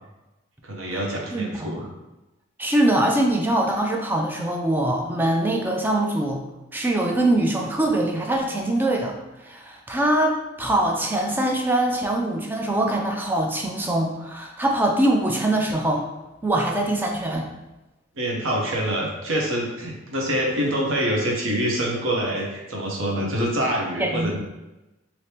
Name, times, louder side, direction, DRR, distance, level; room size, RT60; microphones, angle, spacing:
voice 1, 0.6-1.9 18.1-24.4, right 1 dB, 80° right, -1 dB, 0.8 m, -25 dB
voice 2, 1.3-1.9 2.6-6.4 6.7-9.1 9.4-16.0 16.4-17.5 24.0-24.4, right 1 dB, 10° right, 1 dB, 0.3 m, -23 dB
3.3 x 2.8 x 2.8 m, 1.0 s
head